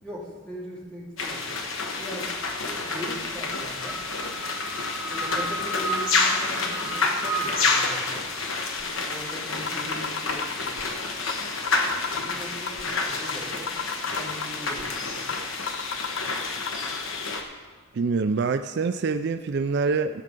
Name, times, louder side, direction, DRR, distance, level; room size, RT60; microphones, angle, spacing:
voice 1, 0.0-1.7 2.0-2.3 2.6-4.0 5.1-8.2 9.1-11.1 12.1-13.7 14.2-15.1, equal, 5° left, -7 dB, 3.1 m, -40 dB
sound 1, 1.2-17.4, left 3 dB, 75° left, 1.3 m, -28 dB
sound 2, 8.8-8.9 9.3-9.4 9.7-10.8 11.3-11.4 11.7-12.8 13.3-13.4 13.7-14.8 15.3-15.4 15.7-16.7, left 7 dB, 60° left, 0.5 m, -32 dB
voice 2, 17.9-20.2, right 4 dB, 55° right, 9 dB, 0.4 m, -25 dB
15.0 x 6.7 x 5.3 m, 1.4 s
head